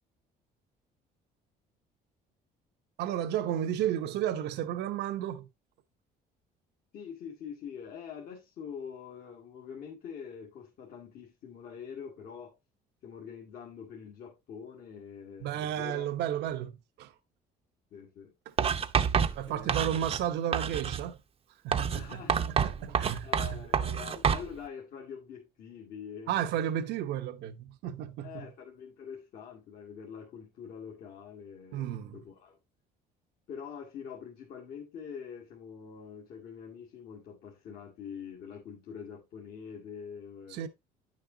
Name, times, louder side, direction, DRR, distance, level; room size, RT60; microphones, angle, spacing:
voice 1, 3.0-5.5 15.4-17.1 19.3-21.2 21.6-22.2 22.5-23.3 26.3-28.3 31.7-32.2 40.5-40.7, right 10 dB, 80° right, 1.0 m, -33 dB
voice 2, 6.9-12.5 13.0-16.1 17.9-18.3 19.5-20.0 21.9-26.5 28.2-32.6 33.5-40.7, left 7 dB, 65° left, 1.9 m, -45 dB
Writing, 18.6-20.3 20.5-21.1 21.7-24.5, right 7 dB, 35° right, 0.7 m, -28 dB
9.3 x 6.6 x 2.7 m
cardioid pair, 110°, 17 cm